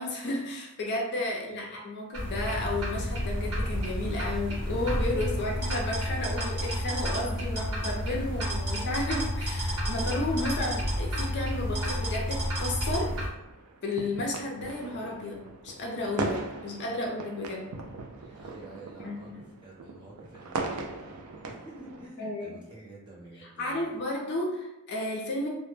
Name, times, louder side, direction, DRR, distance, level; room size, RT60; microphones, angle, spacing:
voice 1, 0.0-13.2 13.8-17.7 19.0-19.4 22.2-22.6 23.6-25.5, left 2 dB, 50° left, 0 dB, 0.4 m, -33 dB
sound 1, 2.1-13.3, equal, 85° right, 0.9 m, -30 dB
sound 2, 13.1-22.1, right 3 dB, 70° right, 0.4 m, -39 dB
voice 2, 18.4-24.0, right 2 dB, 20° right, -6 dB, 0.7 m, -49 dB
2.1 x 2.0 x 3.1 m, 0.94 s
head